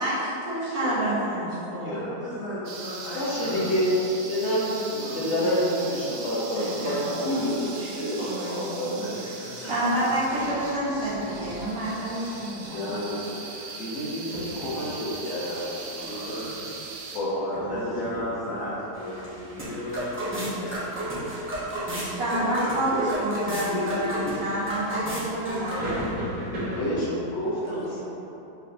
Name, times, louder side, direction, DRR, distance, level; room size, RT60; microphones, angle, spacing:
voice 1, 0.0-2.0 6.5-7.2 7.8-7.9 8.2-9.0 9.6-12.9 13.5-13.7 22.1-26.0 27.9-28.0, right 1 dB, 60° right, -8 dB, 1.3 m, -29 dB
voice 2, 0.8-1.2 1.5-2.0 3.1-8.9 12.6-13.4 13.8-16.5 17.1-18.4 26.7-28.0, equal, 55° left, -6 dB, 0.8 m, -29 dB
voice 3, 1.9-3.7 5.0-5.9 9.0-12.3 16.0-16.7 17.5-21.9 22.4-22.5 22.9-23.1 23.7-24.8, left 1 dB, 85° left, -10 dB, 1.4 m, -37 dB
sound 1, 2.6-17.2, right 3 dB, 90° right, 0.6 m, -40 dB
sound 2, 10.2-27.3, equal, 35° right, 0.8 m, -40 dB
sound 3, 18.9-26.1, right 1 dB, 20° right, 0.3 m, -33 dB
4.3 x 3.4 x 2.6 m, 3.0 s
omnidirectional pair, 1.8 m